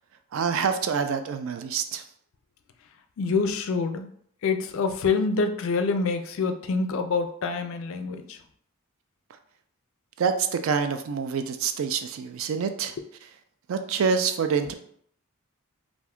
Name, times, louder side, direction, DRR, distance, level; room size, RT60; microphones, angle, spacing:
voice 1, 0.3-2.0 9.3-9.4 10.2-13.0 13.7-14.7, right 6 dB, 60° right, 8 dB, 0.3 m, -26 dB
voice 2, 3.2-4.1 4.4-8.4, left 4 dB, 60° left, 7 dB, 0.3 m, -26 dB
2.5 x 2.3 x 3.5 m, 0.64 s
head